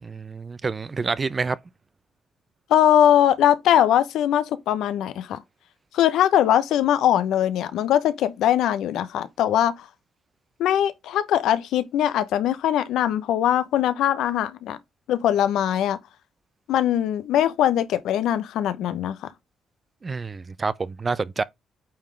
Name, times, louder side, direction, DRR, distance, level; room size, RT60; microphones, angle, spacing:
voice 1, 0.0-1.6 20.0-21.4, right 4 dB, 30° right, 0.4 m, -28 dB
voice 2, 2.7-5.4 5.9-9.9 10.6-14.8 15.1-16.0 16.7-19.2, left 11 dB, 80° left, 0.7 m, -21 dB
8.7 x 3.7 x 3.3 m
cardioid pair, 90°, 0 cm